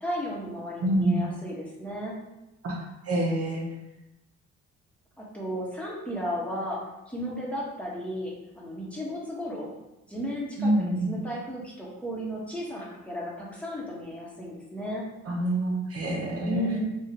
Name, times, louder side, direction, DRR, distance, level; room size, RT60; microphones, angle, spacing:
voice 1, 0.0-2.2 5.2-6.8 7.1-9.7 10.1-15.1 16.4-16.9, equal, 5° left, -5 dB, 1.3 m, -34 dB
voice 2, 0.8-1.2 2.6-2.8 3.0-3.6 10.6-11.1 15.3-16.8, right 1 dB, 50° right, -2 dB, 1.0 m, -26 dB
3.6 x 2.6 x 4.5 m, 0.94 s
cardioid pair, 90°, 30 cm